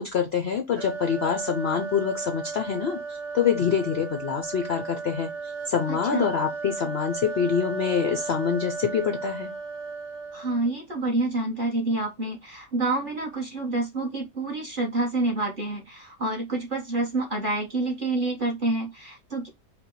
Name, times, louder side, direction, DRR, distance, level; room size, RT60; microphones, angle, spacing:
voice 1, 0.0-9.5, left 7 dB, 70° left, 0.6 m, -26 dB
sound 1, 0.8-10.7, right 4 dB, 80° right, 1.6 m, -35 dB
voice 2, 5.9-6.3 10.3-19.5, right 2 dB, 35° right, 1.1 m, -28 dB
5.2 x 2.2 x 4.5 m
omnidirectional pair, 1.8 m